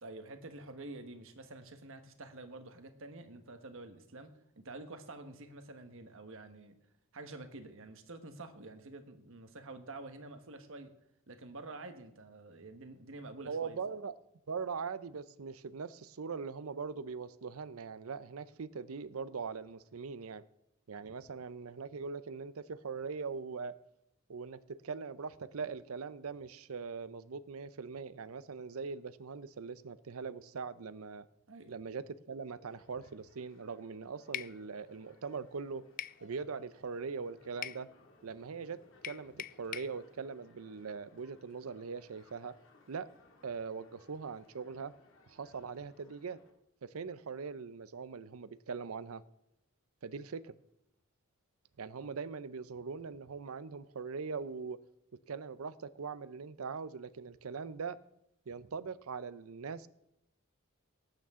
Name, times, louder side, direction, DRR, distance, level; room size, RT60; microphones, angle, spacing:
voice 1, 0.0-4.3 4.6-6.8 7.1-10.9 11.3-13.8 31.5-31.7, right 2 dB, 70° right, 1.3 m, -48 dB
voice 2, 13.5-14.1 14.5-20.4 20.9-23.7 24.3-31.3 31.7-35.8 36.2-37.9 38.2-38.8 39.0-42.5 42.9-43.1 43.4-44.9 45.3-46.4 46.8-49.2 50.0-50.6 51.8-54.8 55.3-58.0 58.5-59.9, right 5 dB, 90° right, 0.6 m, -41 dB
sound 1, 32.6-46.5, left 2 dB, 65° left, 2.4 m, -64 dB
sound 2, 34.3-34.6 36.0-36.2 37.6-37.8 39.0-39.9, left 11 dB, 40° left, 0.3 m, -41 dB
18.0 x 9.0 x 3.7 m
head